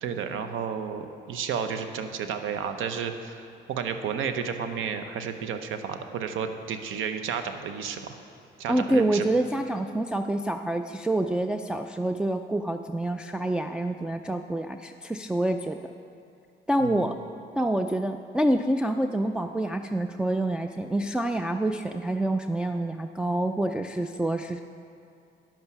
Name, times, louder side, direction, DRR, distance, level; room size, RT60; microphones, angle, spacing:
voice 1, 0.0-3.4 3.7-8.1 8.6-9.3 16.8-17.1, right 7 dB, 85° right, 8 dB, 0.8 m, -32 dB
voice 2, 8.7-15.9 16.7-17.2 17.5-24.6, right 1 dB, 5° right, 4 dB, 0.4 m, -27 dB
10.5 x 8.5 x 6.0 m, 2.6 s
cardioid pair, 90°, 20 cm